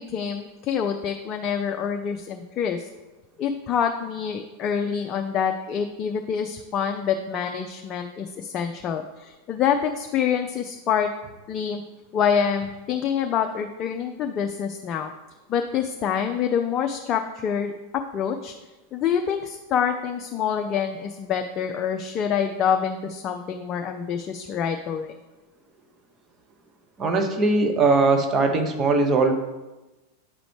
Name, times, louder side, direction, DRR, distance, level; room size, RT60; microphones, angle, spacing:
voice 1, 0.0-2.9 3.4-11.1 11.5-11.8 12.1-15.1 15.5-17.7 18.1-18.5 18.9-25.2, left 7 dB, 30° left, 5 dB, 0.4 m, -26 dB
voice 2, 27.0-29.3, right 3 dB, 25° right, 4 dB, 0.9 m, -20 dB
8.9 x 5.0 x 3.2 m, 1.1 s
figure-of-eight pair, 90°, 0 cm